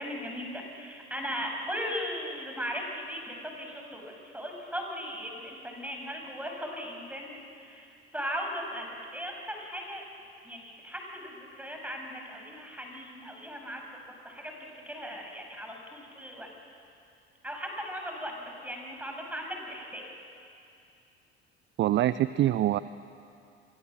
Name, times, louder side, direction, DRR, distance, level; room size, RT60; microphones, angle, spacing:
voice 1, 0.0-10.0 10.4-16.5 17.4-20.1, equal, 5° right, 2 dB, 6.9 m, -38 dB
voice 2, 21.8-22.8, right 13 dB, 35° right, 16 dB, 0.6 m, -24 dB
29.5 x 23.5 x 7.6 m, 2.5 s
figure-of-eight pair, 60°, 33 cm